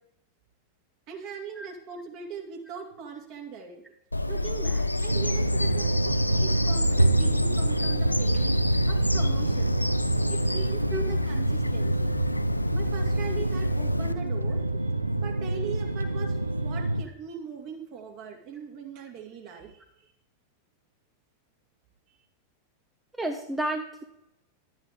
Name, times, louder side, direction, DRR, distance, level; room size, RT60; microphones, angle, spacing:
voice 1, 1.1-3.8 4.3-5.9 6.4-8.5 8.9-9.7 10.3-12.1 12.7-20.1 22.1-22.2, right 6 dB, 40° right, 1 dB, 2.4 m, -41 dB
Bird vocalization bird call bird song, 4.1-14.1, left 2 dB, 85° left, 0.4 m, -29 dB
sound 1, 5.1-17.0, right 2 dB, 85° right, 0.5 m, -27 dB
voice 2, 23.2-24.0, right 1 dB, 10° right, 4 dB, 0.9 m, -31 dB
12.0 x 8.9 x 3.6 m, 0.79 s
figure-of-eight pair, 90°, 0 cm